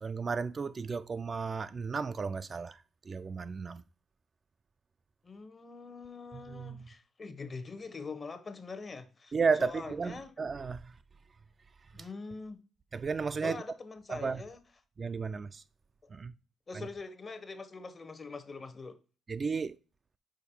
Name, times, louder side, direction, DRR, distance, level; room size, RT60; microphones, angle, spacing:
voice 1, 0.0-2.8 3.1-3.8 6.3-6.8 9.3-10.9 12.9-13.6 14.1-14.4 15.0-15.6 16.1-16.3 16.7-16.8 19.3-19.8, right 5 dB, 35° right, 0.3 m, -33 dB
voice 2, 5.2-10.3 11.9-12.6 13.4-14.6 16.7-19.0, left 4 dB, 35° left, 0.9 m, -43 dB
5.1 x 4.7 x 4.3 m
cardioid pair, 90°, 0 cm